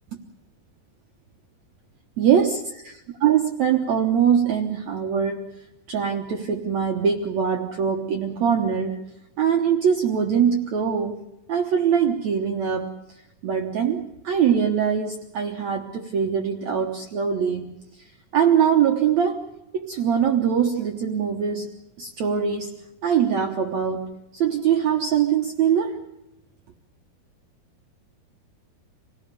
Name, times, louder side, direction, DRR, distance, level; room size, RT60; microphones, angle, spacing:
voice 1, 2.2-5.6 5.9-9.1 9.4-11.2 11.5-12.9 13.4-17.8 18.3-19.5 19.7-21.7 22.0-26.0, right 8 dB, 60° right, 3 dB, 2.1 m, -22 dB
27.0 x 18.0 x 6.7 m, 0.89 s
omnidirectional pair, 4.5 m